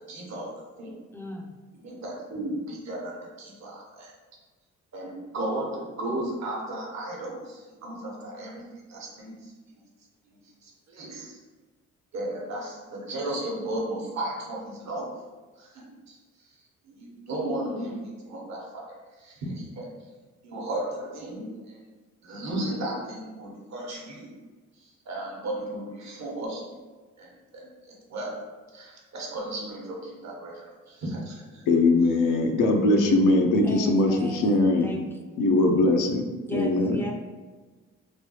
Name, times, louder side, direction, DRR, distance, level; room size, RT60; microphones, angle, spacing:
voice 1, 0.1-0.9 1.8-4.1 4.9-9.8 10.6-11.4 12.1-15.1 15.6-16.2 16.9-19.9 20.4-21.8 22.2-24.4 24.8-26.8 27.2-28.4 28.7-31.7, right 1 dB, 60° right, -2 dB, 0.9 m, -35 dB
voice 2, 1.1-1.6 33.6-35.2 36.5-37.1, equal, 5° left, 1 dB, 0.4 m, -37 dB
voice 3, 31.7-34.9 35.4-37.0, left 2 dB, 85° left, 3 dB, 0.5 m, -21 dB
3.2 x 2.3 x 2.8 m, 1.3 s
cardioid pair, 90°, 30 cm